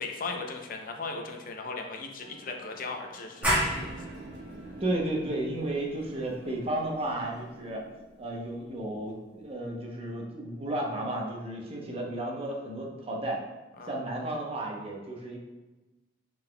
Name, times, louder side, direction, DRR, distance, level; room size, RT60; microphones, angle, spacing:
voice 1, 0.0-4.2 13.8-14.0, left 3 dB, 50° left, 3 dB, 0.5 m, -38 dB
sound 1, 2.2-7.4, right 1 dB, 70° right, 1.3 m, -53 dB
sound 2, 3.4-8.8, equal, 10° right, 1.5 m, -34 dB
sound 3, 3.4-8.4, right 2 dB, 50° right, 0.4 m, -48 dB
voice 2, 4.8-7.8 8.2-13.4 13.9-15.4, right 1 dB, 35° right, -1 dB, 0.8 m, -33 dB
5.3 x 3.8 x 2.2 m, 1.1 s
head